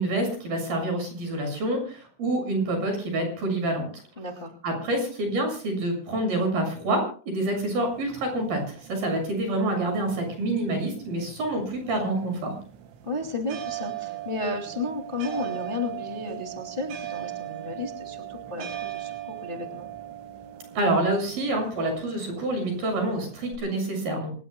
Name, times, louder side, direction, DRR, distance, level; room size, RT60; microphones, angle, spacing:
voice 1, 0.0-3.9 4.6-12.5 20.7-24.3, right 1 dB, 45° right, 4 dB, 8.5 m, -27 dB
voice 2, 4.2-4.5 13.0-19.9, left 2 dB, 90° left, 2 dB, 0.5 m, -33 dB
sound 1, 7.6-23.6, right 12 dB, 70° right, 4.1 m, -40 dB
26.5 x 19.5 x 2.2 m, 0.40 s
omnidirectional pair, 5.9 m